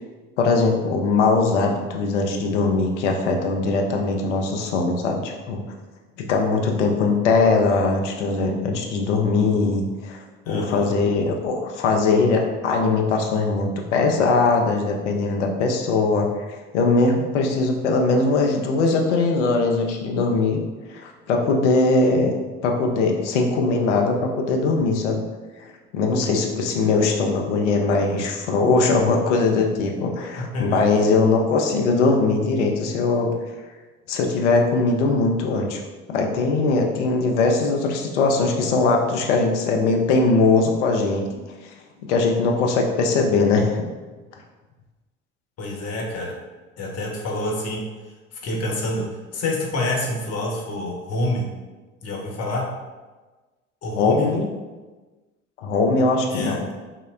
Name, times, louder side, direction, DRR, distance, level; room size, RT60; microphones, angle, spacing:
voice 1, 0.4-5.7 6.2-20.6 20.9-22.3 22.6-25.2 25.9-33.3 34.1-35.8 36.1-41.4 42.1-43.8 53.9-54.5 55.6-56.6, left 3 dB, 70° left, 2 dB, 0.6 m, -21 dB
voice 2, 10.4-10.9 30.4-30.8 45.6-46.4 46.8-47.8 48.3-51.5 52.0-52.7 53.8-54.3 56.3-56.6, left 1 dB, 40° left, -2 dB, 1.0 m, -27 dB
5.5 x 2.1 x 2.4 m, 1.3 s
figure-of-eight pair, 55°, 37 cm